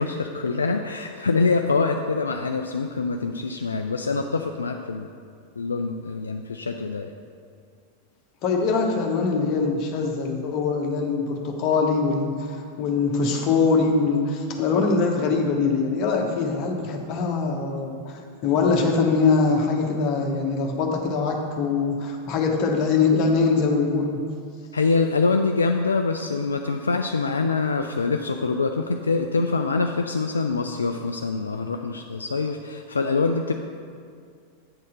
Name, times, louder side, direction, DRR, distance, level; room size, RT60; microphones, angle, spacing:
voice 1, 0.0-5.1 5.6-7.1 24.7-33.5, left 4 dB, 75° left, 5 dB, 0.3 m, -25 dB
voice 2, 8.4-24.2, left 4 dB, 40° left, 1 dB, 1.2 m, -23 dB
8.7 x 4.2 x 6.4 m, 2.2 s
figure-of-eight pair, 90°, 0 cm